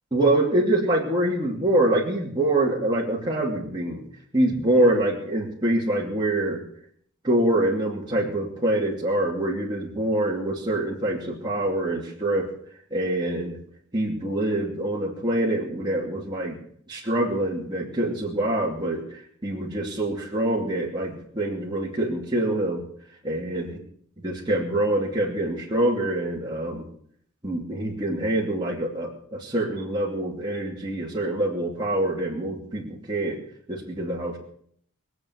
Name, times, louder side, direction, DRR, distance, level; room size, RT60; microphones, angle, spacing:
voice 1, 0.1-4.0 4.3-6.6 7.2-12.5 12.9-13.6 13.9-16.6 16.9-22.8 23.2-23.7 24.2-26.9 27.4-33.4 33.7-34.4, right 1 dB, 20° right, -5 dB, 2.6 m, -25 dB
21.5 x 7.9 x 7.8 m, 0.64 s
head